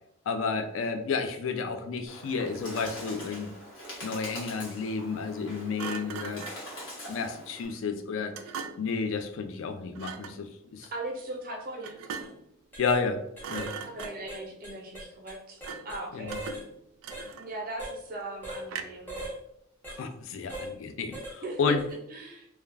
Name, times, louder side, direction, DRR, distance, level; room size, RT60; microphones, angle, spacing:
voice 1, 0.3-3.5 4.0-6.4 7.1-8.3 8.8-10.9 12.8-13.2 13.5-13.7 16.1-16.4 19.9-21.8, left 5 dB, 75° left, 6 dB, 0.4 m, -31 dB
Bird, 2.1-7.7, equal, 60° left, 1.1 m, -43 dB
Thump thud, 2.2-3.0 5.8-6.7 8.3-9.0 9.9-10.4 11.8-12.5 12.9-13.1 13.4-14.4 15.6-16.0 16.3-17.7 18.7-19.1, right 6 dB, 90° right, 0.3 m, -40 dB
voice 2, 10.9-12.0 13.8-16.4 17.4-19.2 21.4-21.8 22.1-22.5, right 2 dB, 45° right, 0 dB, 0.6 m, -39 dB
sound 1, 12.1-12.3 12.7-13.0 13.4-13.7 14.0-16.0 16.3-16.6 17.1-17.3 17.8-18.0 18.4-18.6 19.1-19.4 19.8-20.0 20.5-20.7 21.1-21.4 21.8-21.9, right 1 dB, 10° left, 0.7 m, -39 dB
2.3 x 2.2 x 3.2 m, 0.75 s
head